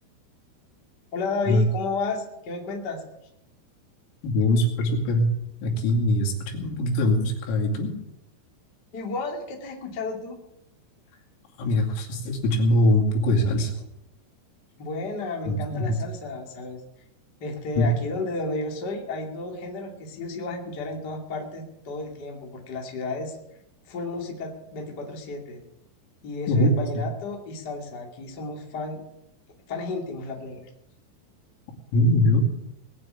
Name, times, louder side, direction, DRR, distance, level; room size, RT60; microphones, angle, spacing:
voice 1, 1.1-3.1 8.9-10.4 14.8-16.8 17.4-23.4 23.9-25.6 26.2-29.0 29.7-30.7, left 3 dB, 35° left, 0 dB, 1.8 m, -32 dB
voice 2, 4.2-5.3 5.6-7.9 11.6-13.7 15.5-16.0 17.8-17.9 26.5-27.0 31.9-32.4, left 1 dB, 80° left, -1 dB, 5.1 m, -22 dB
20.5 x 7.0 x 8.7 m, 0.85 s
omnidirectional pair, 6.0 m